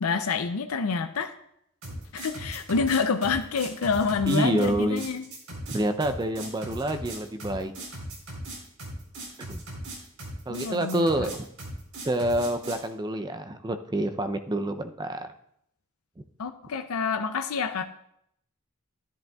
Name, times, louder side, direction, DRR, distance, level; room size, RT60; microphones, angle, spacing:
voice 1, 0.0-1.3 2.1-5.2 10.5-11.3 16.4-17.8, left 5 dB, 85° left, 7 dB, 0.5 m, -27 dB
sound 1, 1.8-12.8, right 1 dB, 70° right, 3.7 m, -38 dB
voice 2, 4.3-5.0 5.7-7.7 9.5-9.6 10.5-11.5 12.0-15.3, right 1 dB, 20° right, 9 dB, 0.5 m, -27 dB
12.0 x 10.5 x 2.3 m, 0.74 s
head